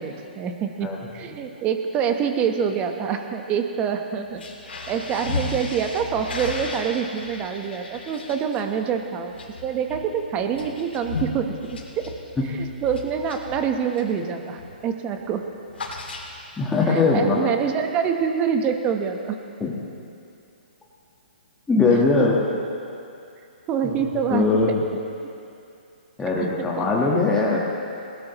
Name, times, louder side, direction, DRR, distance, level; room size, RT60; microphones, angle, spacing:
voice 1, 0.0-4.4 4.9-9.4 9.6-12.1 12.5-15.4 16.9-19.4 21.9-22.4 23.7-24.4 26.8-26.9, right 7 dB, 25° right, 5 dB, 1.0 m, -26 dB
sound 1, 4.3-14.2 14.6-14.8 15.1-16.7, left 3 dB, 85° left, 2.5 m, -35 dB
voice 2, 16.6-17.4 19.6-19.7 21.7-22.4 23.8-24.0 24.3-24.8 26.2-27.6, left 3 dB, 10° left, -5 dB, 1.4 m, -20 dB
20.0 x 17.5 x 3.0 m, 2.6 s
hypercardioid pair, 140°, 6 cm